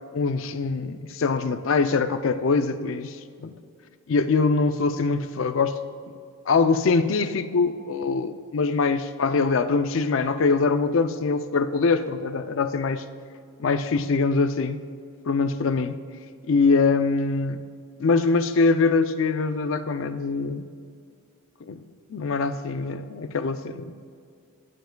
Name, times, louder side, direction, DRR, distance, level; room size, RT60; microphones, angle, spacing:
voice 1, 0.1-3.5 4.1-5.8 6.5-13.1 13.6-14.8 15.3-16.0 16.5-17.6 18.0-20.7 21.6-21.8 22.1-23.9, left 4 dB, 60° left, 10 dB, 0.4 m, -23 dB
11.5 x 9.1 x 2.2 m, 2.2 s
head